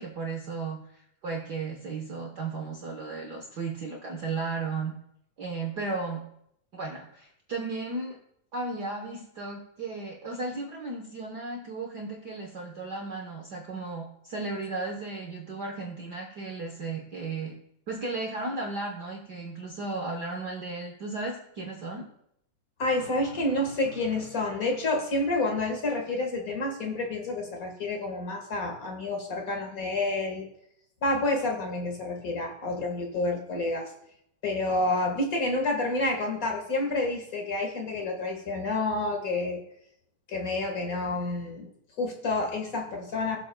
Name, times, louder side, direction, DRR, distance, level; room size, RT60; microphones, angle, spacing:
voice 1, 0.0-4.9 5.4-6.2 6.7-8.2 8.5-17.5 17.9-22.1, right 3 dB, 85° right, 1 dB, 0.9 m, -35 dB
voice 2, 22.8-30.4 31.0-33.9 34.4-39.6 40.3-41.7 42.0-43.4, left 2 dB, 40° left, 2 dB, 1.3 m, -29 dB
16.5 x 7.5 x 2.2 m, 0.72 s
omnidirectional pair, 3.4 m